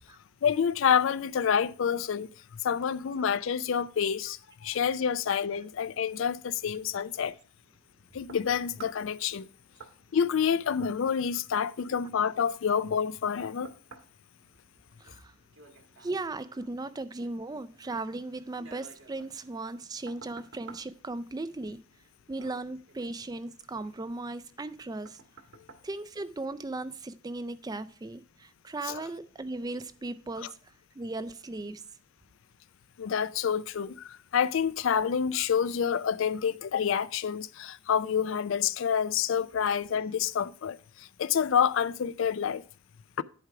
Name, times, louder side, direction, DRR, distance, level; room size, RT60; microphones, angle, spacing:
voice 1, 0.4-2.3 2.6-7.4 8.1-9.5 10.1-13.7 28.9-29.0 33.0-42.6 43.2-43.3, left 7 dB, 65° left, 0.4 m, -28 dB
sound 1, 7.6-26.9 27.4-27.5, right 4 dB, 65° right, 1.3 m, -55 dB
voice 2, 15.0-15.3 16.0-21.8 22.3-25.2 25.8-31.8, right 2 dB, 20° right, 0.4 m, -37 dB
10.5 x 4.7 x 4.7 m
head